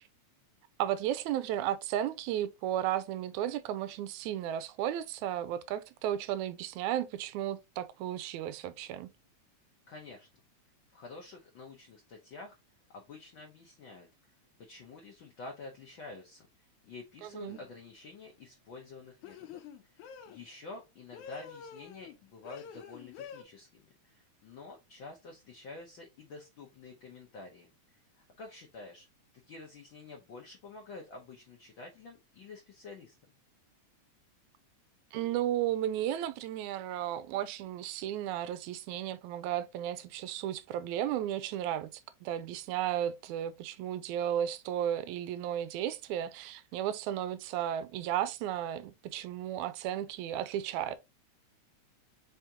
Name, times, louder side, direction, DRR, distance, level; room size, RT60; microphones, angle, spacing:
voice 1, 0.8-9.1 17.2-17.6 35.1-41.9 42.2-51.0, right 11 dB, 85° right, 2.0 m, -34 dB
voice 2, 9.9-10.3 10.9-12.6 12.9-14.3 14.6-16.5 16.8-29.1 29.5-33.2, left 3 dB, 65° left, 1.2 m, -49 dB
sound 1, 17.5-17.8 19.2-20.4 21.1-22.2 22.5-23.4, left 7 dB, 85° left, 2.1 m, -47 dB
5.1 x 3.5 x 2.8 m
omnidirectional pair, 3.4 m